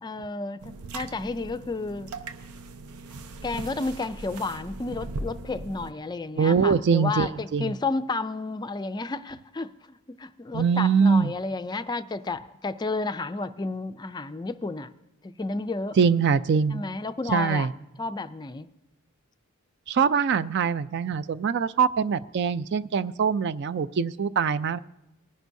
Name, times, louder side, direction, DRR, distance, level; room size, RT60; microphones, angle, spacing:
voice 1, 0.0-2.2 3.4-14.9 15.2-16.0 16.7-17.7 18.0-18.7, left 3 dB, 20° left, 11 dB, 0.4 m, -32 dB
sound 1, 0.6-5.9, right 2 dB, 85° right, 0.7 m, -39 dB
voice 2, 6.4-7.7 10.5-11.3 16.0-16.8 17.3-17.7 19.9-24.8, right 6 dB, 50° right, 15 dB, 0.4 m, -23 dB
20.5 x 10.5 x 2.7 m, 0.93 s
head